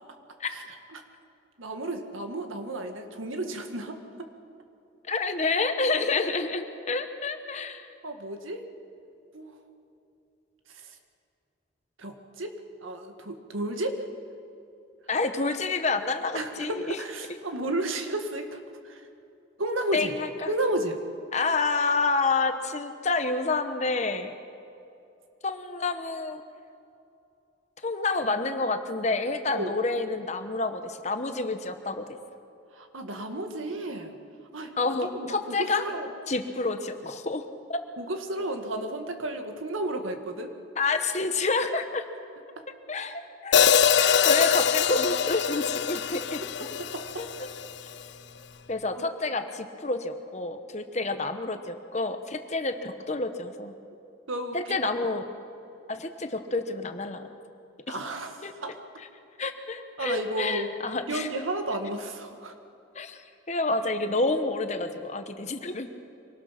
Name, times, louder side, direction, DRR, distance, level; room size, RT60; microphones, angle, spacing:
voice 1, 1.6-4.3 8.0-8.6 9.3-9.5 12.0-12.5 12.8-14.0 16.3-18.6 18.8-19.0 19.6-20.1 20.5-21.0 29.5-29.7 32.7-34.1 34.5-36.1 38.0-40.5 43.0-43.1 46.8-47.0 48.9-49.1 54.3-54.8 57.9-58.7 60.0-60.7 61.1-62.5, right 1 dB, 90° right, 5 dB, 1.9 m, -32 dB
voice 2, 5.1-7.9 15.1-17.0 19.9-20.5 21.3-24.3 25.4-26.4 27.8-32.0 34.8-35.8 36.3-37.4 37.7-37.8 40.8-42.0 42.9-46.4 47.2-47.3 48.7-53.7 54.5-55.2 55.9-57.3 57.9-58.0 58.4-58.5 59.4-61.3 62.9-63.2 63.5-65.9, left 3 dB, 35° left, 8 dB, 1.1 m, -29 dB
Hi-hat, 43.5-47.7, left 8 dB, 60° left, 0.6 m, -23 dB
24.0 x 18.5 x 5.9 m, 2.7 s
head